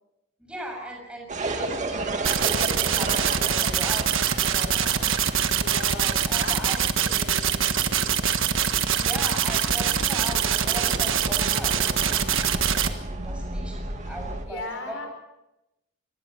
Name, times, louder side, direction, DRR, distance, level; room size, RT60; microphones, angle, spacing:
voice 1, 0.4-6.8 8.9-12.5 12.9-13.0 13.2-15.1, right 1 dB, 5° right, 1 dB, 6.8 m, -38 dB
sound 1, 1.3-14.5, right 2 dB, 35° right, 2.2 m, -35 dB
sound 2, 2.2-12.9, right 8 dB, 65° right, 1.5 m, -24 dB
voice 2, 5.4-6.6 6.9-8.1 14.0-15.1, left 2 dB, 60° left, 5 dB, 5.1 m, -39 dB
26.0 x 20.5 x 5.7 m, 0.91 s
head